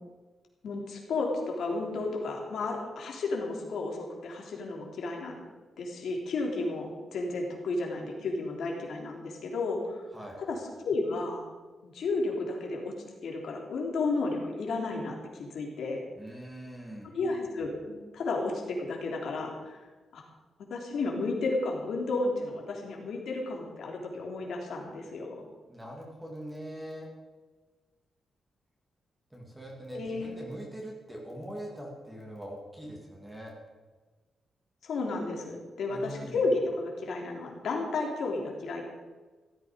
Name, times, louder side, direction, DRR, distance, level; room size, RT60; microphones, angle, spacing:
voice 1, 0.6-5.4 5.8-10.0 10.5-10.6 10.8-11.4 11.8-12.9 13.2-16.0 17.1-19.9 20.1-20.2 20.7-25.4 29.9-30.3 34.8-38.8, left 3 dB, 70° left, 0 dB, 3.5 m, -32 dB
voice 2, 16.2-17.1 25.7-27.1 29.3-33.5 35.9-36.4, equal, 5° right, -2 dB, 2.8 m, -42 dB
15.5 x 13.5 x 5.3 m, 1.3 s
wide cardioid pair, 155°, 0 cm